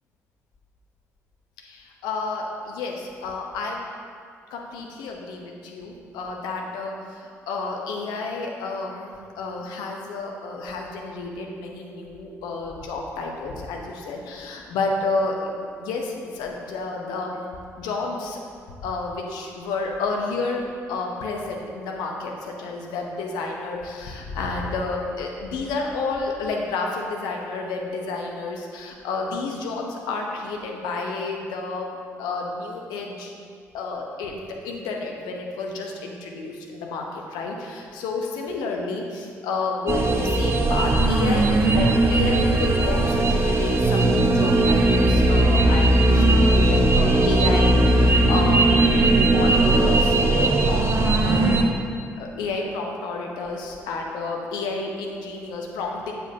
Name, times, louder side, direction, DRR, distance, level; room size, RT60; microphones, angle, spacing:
voice 1, 1.6-3.9 4.5-17.5 17.8-18.4 18.8-33.3 33.7-49.0 49.3-51.7 52.2-56.1, left 3 dB, 60° left, 1 dB, 0.9 m, -30 dB
sound 1, 39.9-51.6, right 2 dB, 35° right, 0.8 m, -18 dB
7.3 x 6.8 x 2.8 m, 2.2 s
figure-of-eight pair, 45°, 8 cm